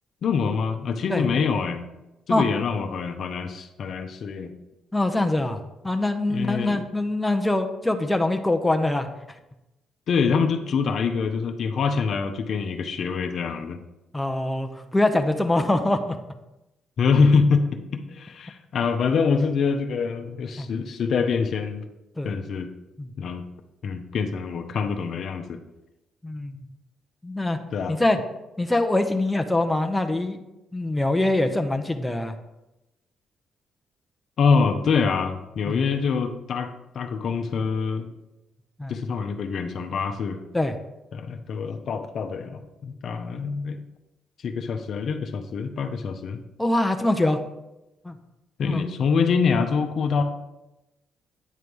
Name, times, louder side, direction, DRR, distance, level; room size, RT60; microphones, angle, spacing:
voice 1, 0.2-1.8 2.3-4.5 6.3-6.8 10.1-13.8 17.0-21.8 22.2-22.7 23.2-23.4 23.8-25.6 27.7-28.0 34.4-38.1 38.9-40.4 41.1-43.8 44.4-46.4 48.6-50.2, left 5 dB, 60° left, 6 dB, 0.7 m, -25 dB
voice 2, 4.9-5.6 5.8-9.1 14.1-16.2 20.6-20.7 22.2-22.3 23.0-23.1 26.2-26.6 27.2-27.6 27.9-28.2 28.6-30.4 30.7-32.3 35.7-35.8 38.8-39.0 40.5-40.7 46.6-47.4 48.0-48.2 48.6-48.8, left 2 dB, 10° left, 6 dB, 0.6 m, -23 dB
9.1 x 3.2 x 5.3 m, 0.96 s
cardioid pair, 90°, 0 cm